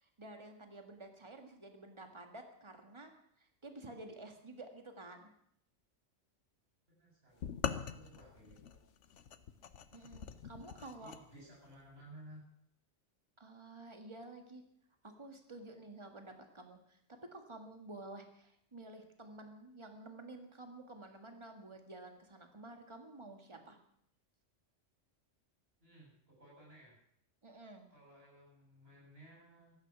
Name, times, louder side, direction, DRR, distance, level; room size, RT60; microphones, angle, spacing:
voice 1, 0.0-3.1 3.4-5.3 9.9-11.1 13.4-14.6 15.0-23.8 27.4-27.9, right 2 dB, 25° right, 5 dB, 1.8 m, -51 dB
voice 2, 6.9-8.8 10.9-12.4 25.8-27.0 27.9-29.8, right 1 dB, 50° right, -3 dB, 7.5 m, -57 dB
sound 1, 7.4-11.2, left 8 dB, 70° left, 1.1 m, -43 dB
15.5 x 13.0 x 6.1 m, 0.70 s
omnidirectional pair, 1.3 m